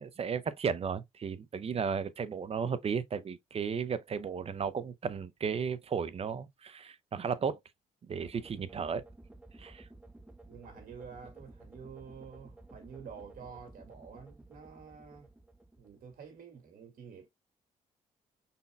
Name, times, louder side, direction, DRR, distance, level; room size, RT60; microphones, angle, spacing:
voice 1, 0.0-7.6 8.0-9.0 9.6-9.9, right 6 dB, 40° right, 0.6 m, -34 dB
sound 1, 8.2-16.4, right 2 dB, 10° right, 0.8 m, -54 dB
voice 2, 10.4-15.3 15.8-17.3, right 6 dB, 65° right, 2.0 m, -49 dB
5.3 x 4.1 x 2.3 m
cardioid pair, 70°, 15 cm